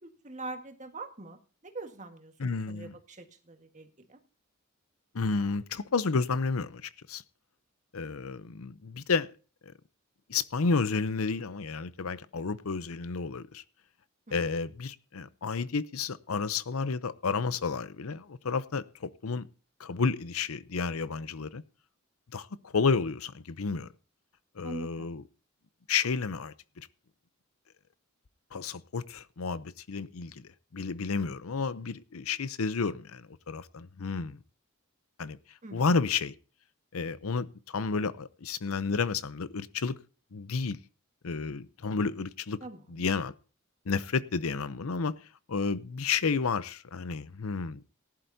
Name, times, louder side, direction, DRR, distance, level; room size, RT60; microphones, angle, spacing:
voice 1, 0.0-1.4 1.6-2.3 2.7-4.2 14.3-14.4 24.6-25.1 35.6-35.9 42.6-43.0, right 2 dB, 35° right, 1.6 m, -43 dB
voice 2, 2.4-3.0 5.1-7.2 7.9-9.3 10.3-13.6 14.3-19.5 19.8-21.6 22.3-23.9 24.6-25.2 25.9-26.9 28.5-34.4 35.2-35.4 35.7-36.3 36.9-39.9 40.3-40.8 41.2-42.6 42.9-43.3 43.9-45.2 45.5-47.8, left 4 dB, 85° left, 0.7 m, -31 dB
18.0 x 11.5 x 2.7 m
head